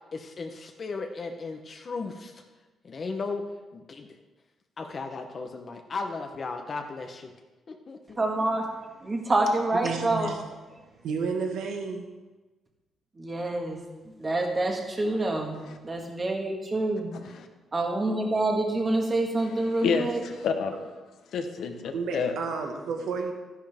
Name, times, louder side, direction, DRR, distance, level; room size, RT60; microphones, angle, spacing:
voice 1, 0.1-2.4 2.8-3.4 3.7-4.2 4.8-7.3 7.7-8.2, left 4 dB, 35° left, 5 dB, 0.9 m, -36 dB
voice 2, 8.2-8.7 9.0-10.4 13.2-13.8 14.2-15.6 15.8-17.1 17.7-20.2, right 2 dB, 20° right, 1 dB, 1.7 m, -27 dB
voice 3, 9.8-10.4 11.0-12.0 21.9-23.3, right 5 dB, 80° right, 3 dB, 1.6 m, -31 dB
voice 4, 17.1-17.5 19.8-20.8 21.3-22.3, left 6 dB, 70° left, 6 dB, 1.1 m, -29 dB
12.5 x 10.5 x 3.6 m, 1.2 s
cardioid pair, 145°, 0 cm